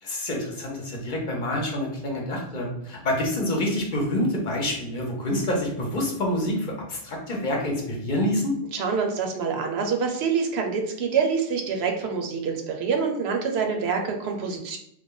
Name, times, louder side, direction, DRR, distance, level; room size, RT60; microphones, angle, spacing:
voice 1, 0.0-8.5, left 1 dB, 50° left, -1 dB, 0.8 m, -27 dB
voice 2, 8.7-14.8, right 5 dB, 75° right, 3 dB, 0.8 m, -26 dB
3.1 x 2.2 x 3.7 m, 0.75 s
omnidirectional pair, 1.1 m